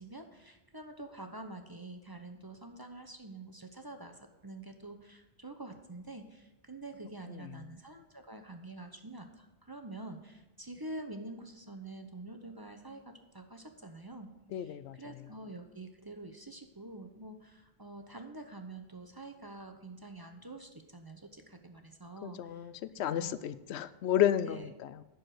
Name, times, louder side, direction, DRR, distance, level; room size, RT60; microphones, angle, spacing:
voice 1, 0.0-14.3 14.6-22.7 23.1-23.3 24.4-24.7, right 2 dB, 25° right, 6 dB, 0.7 m, -47 dB
voice 2, 7.3-7.6 14.5-15.3 22.2-25.0, left 10 dB, 85° left, 14 dB, 0.8 m, -32 dB
11.0 x 4.8 x 7.8 m, 1.0 s
omnidirectional pair, 1.1 m